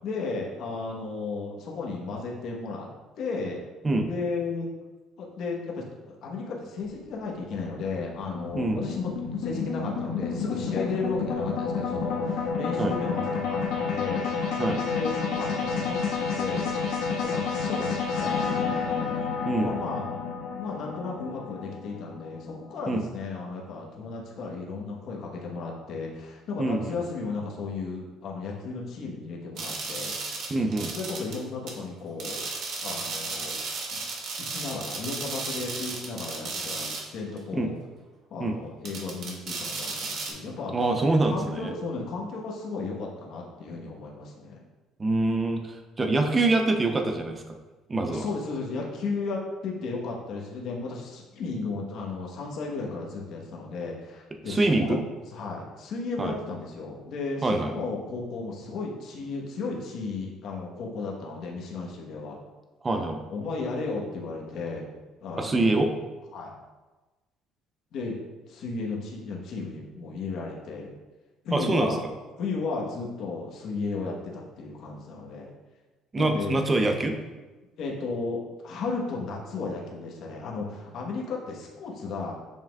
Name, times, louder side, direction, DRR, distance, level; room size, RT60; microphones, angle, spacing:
voice 1, 0.0-2.9 3.2-3.6 4.1-4.7 5.2-14.5 14.8-16.8 17.2-19.2 19.6-20.1 20.5-30.1 30.9-32.5 32.8-33.6 33.9-34.0 34.4-37.7 38.3-40.8 41.3-44.6 48.1-55.0 55.3-62.4 63.3-64.9 65.2-65.9 66.3-66.5 67.9-68.2 68.5-70.9 71.4-72.0 72.4-75.5 76.2-76.6 77.8-82.3, left 4 dB, 55° left, -2 dB, 1.1 m, -34 dB
sound 1, 6.8-23.2, left 5 dB, 75° left, 1.4 m, -30 dB
voice 2, 26.6-27.0 30.5-30.9 37.5-37.7 38.4-38.6 40.7-41.7 45.0-47.4 47.9-48.3 54.5-55.0 56.2-56.3 57.4-57.7 62.8-63.2 65.4-65.9 71.5-72.0 76.1-77.2, right 2 dB, 20° right, 5 dB, 0.6 m, -25 dB
sound 2, 29.6-31.4 31.7-31.8 32.2-37.1 37.4-37.5 38.9-40.3, right 3 dB, 50° right, 1.1 m, -34 dB
7.3 x 5.6 x 2.3 m, 1.2 s
cardioid pair, 155°, 0 cm